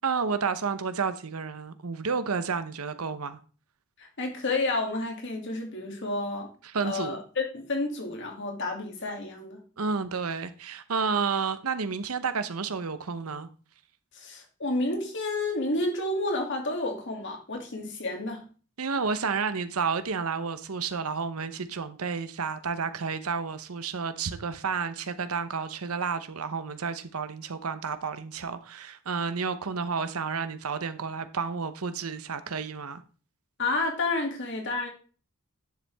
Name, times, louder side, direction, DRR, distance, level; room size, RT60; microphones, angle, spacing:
voice 1, 0.0-3.4 6.6-7.2 9.8-13.5 18.8-33.0, right 5 dB, 85° right, 0.9 m, -31 dB
voice 2, 4.0-6.5 6.8-9.6 14.1-18.4 33.6-34.9, left 2 dB, 55° left, 2.4 m, -30 dB
10.0 x 7.1 x 3.5 m
head